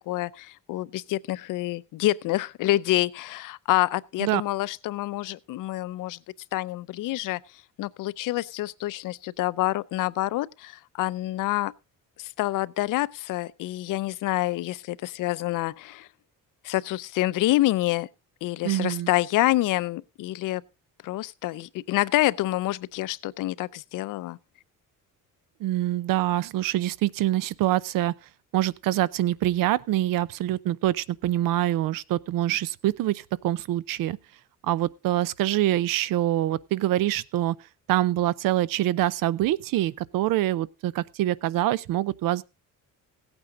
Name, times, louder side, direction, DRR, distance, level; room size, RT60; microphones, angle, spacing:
voice 1, 0.1-6.2 6.5-7.4 7.8-11.7 12.2-16.1 16.6-18.1 18.4-20.6 21.0-24.4, left 16 dB, 70° left, 0.5 m, -27 dB
voice 2, 18.6-19.1 25.6-28.1 28.5-34.2 34.6-37.6 37.9-42.4, right 14 dB, 85° right, 0.6 m, -25 dB
16.0 x 8.9 x 3.7 m
cardioid pair, 165°, 33 cm